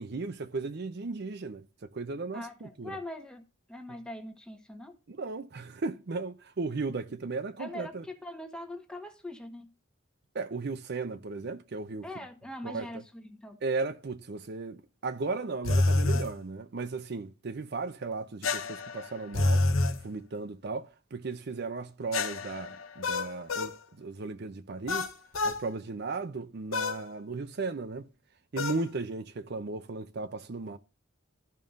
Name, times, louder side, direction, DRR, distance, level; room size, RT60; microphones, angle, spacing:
voice 1, 0.0-3.0 5.1-8.0 10.3-12.0 12.6-12.9 13.6-19.7 20.0-23.7 24.0-25.1 25.4-28.0 28.5-30.8, right 3 dB, 55° right, 0.6 m, -36 dB
voice 2, 2.3-5.0 7.6-9.7 12.0-13.6, left 1 dB, 5° left, 1.1 m, -42 dB
sound 1, 15.6-16.3 18.4-20.0 22.1-23.8 24.9-25.6 26.7-27.0 28.6-28.8, left 2 dB, 80° left, 0.9 m, -28 dB
14.5 x 5.4 x 2.5 m
head